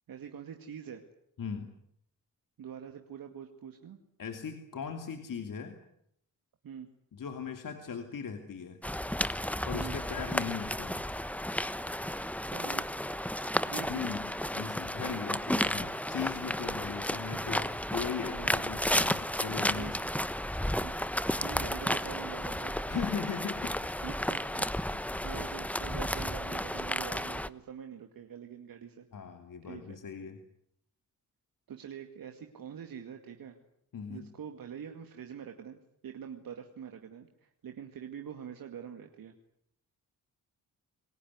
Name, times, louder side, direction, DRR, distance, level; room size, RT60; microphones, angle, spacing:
voice 1, 0.1-1.0 2.6-4.0 6.6-6.9 9.7-10.0 12.5-12.9 13.7-14.1 18.2-18.5 19.7-20.1 20.8-22.9 24.0-29.1 29.7-30.0 31.7-33.6 34.1-39.3, right 8 dB, 75° right, 4 dB, 2.3 m, -45 dB
voice 2, 1.4-1.7 4.2-5.8 7.1-8.8 9.6-11.0 13.9-20.0 22.9-23.7 24.9-25.0 29.1-30.4 33.9-34.3, left 6 dB, 65° left, 6 dB, 2.8 m, -38 dB
sound 1, 8.8-27.5, left 1 dB, 5° left, 1.1 m, -33 dB
28.0 x 19.0 x 9.6 m, 0.73 s
cardioid pair, 60°, 35 cm